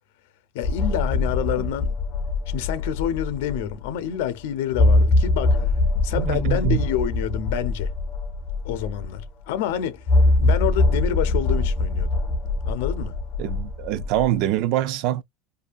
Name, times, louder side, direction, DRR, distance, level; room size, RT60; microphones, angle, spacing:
voice 1, 0.5-1.9 2.5-5.6 6.0-7.9 8.6-10.0 10.4-12.1 12.7-13.2, left 10 dB, 75° left, 0.7 m, -28 dB
sound 1, 0.6-3.9 4.2-4.3 4.7-9.3 10.1-14.4, left 2 dB, 25° left, 0.4 m, -23 dB
voice 2, 6.1-6.9 13.4-15.2, right 13 dB, 50° right, 0.4 m, -24 dB
2.6 x 2.3 x 2.5 m
cardioid pair, 175°, 0 cm